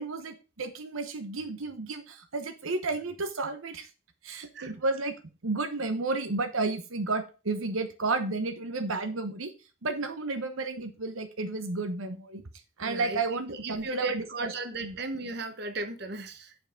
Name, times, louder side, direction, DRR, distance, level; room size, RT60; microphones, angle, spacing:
voice 1, 0.0-3.9 4.2-5.1 5.4-9.5 9.8-12.4 12.8-14.5 14.8-15.0, right 3 dB, 80° right, 8 dB, 1.0 m, -32 dB
voice 2, 4.3-4.7 12.8-16.6, right 2 dB, 50° right, 8 dB, 1.0 m, -36 dB
7.1 x 5.7 x 5.1 m, 0.32 s
head